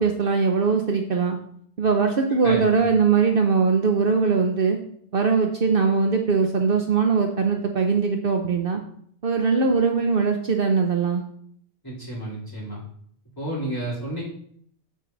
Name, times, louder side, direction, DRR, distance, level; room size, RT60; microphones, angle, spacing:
voice 1, 0.0-1.4 1.8-4.8 5.1-8.8 9.2-11.2, right 5 dB, 55° right, 4 dB, 0.9 m, -21 dB
voice 2, 2.4-2.8 11.8-12.8 13.4-14.2, right 1 dB, 20° left, -7 dB, 4.0 m, -31 dB
7.9 x 7.5 x 4.0 m, 0.65 s
omnidirectional pair, 1.2 m